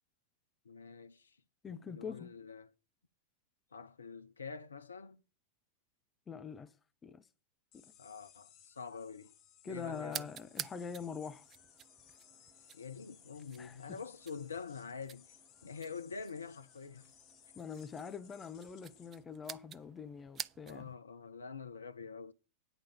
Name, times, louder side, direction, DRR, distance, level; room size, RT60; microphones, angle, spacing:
voice 1, 0.6-1.4 1.7-2.7 3.7-5.2 8.0-9.3 9.6-10.3 12.7-15.3 15.6-17.1 20.7-22.3, left 5 dB, 75° left, 0.7 m, -46 dB
voice 2, 1.6-2.3 6.3-6.7 7.0-7.3 7.7-7.8 9.6-11.5 13.6-14.0 17.6-20.9, left 6 dB, 20° left, 0.9 m, -44 dB
sound 1, 7.7-19.2, left 9 dB, 40° left, 1.4 m, -62 dB
sound 2, 10.1-21.0, right 8 dB, 25° right, 0.6 m, -50 dB
10.5 x 5.0 x 7.5 m
figure-of-eight pair, 90°, 0 cm